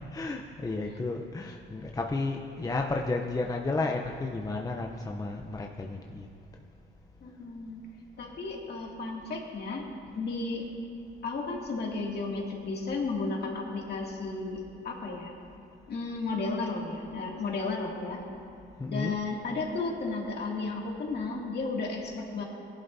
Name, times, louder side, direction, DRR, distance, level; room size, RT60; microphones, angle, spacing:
voice 1, 0.1-6.3 18.8-19.2, left 3 dB, 20° left, 2 dB, 0.7 m, -32 dB
voice 2, 7.2-7.8 8.2-9.9 10.2-10.6 11.2-15.3 15.9-18.2 18.9-22.4, left 3 dB, 55° left, -2 dB, 2.4 m, -33 dB
17.5 x 11.0 x 2.7 m, 2.7 s
cardioid pair, 90°, 20 cm